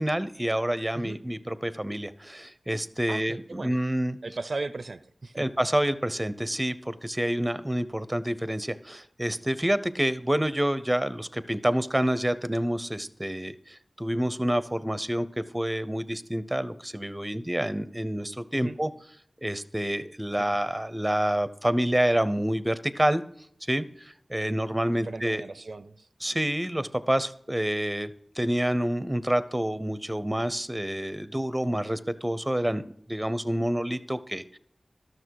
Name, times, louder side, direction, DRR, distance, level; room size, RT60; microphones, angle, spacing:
voice 1, 0.0-4.2 5.3-15.3 15.5-18.9 19.4-23.2 23.7-25.4 26.2-28.1 28.4-32.8 33.1-34.6, right 1 dB, 15° right, 15 dB, 0.7 m, -28 dB
voice 2, 3.1-3.8 4.2-5.4 18.5-18.8 20.4-20.6 24.9-26.1, right 3 dB, 70° right, 13 dB, 0.4 m, -37 dB
12.5 x 6.4 x 4.7 m, 0.68 s
wide cardioid pair, 50°, 0 cm